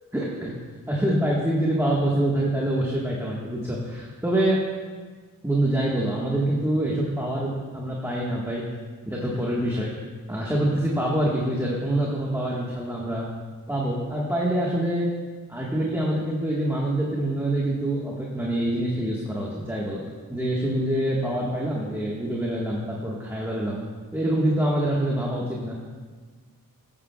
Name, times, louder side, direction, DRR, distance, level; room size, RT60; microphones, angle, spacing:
voice 1, 0.1-0.5 0.9-4.6 5.4-8.6 9.1-9.9 10.3-13.2 13.7-15.0 15.5-20.0 20.3-23.8 24.1-25.7, right 1 dB, 5° right, -4 dB, 1.4 m, -25 dB
14.5 x 9.8 x 2.3 m, 1.5 s
wide cardioid pair, 105°, 36 cm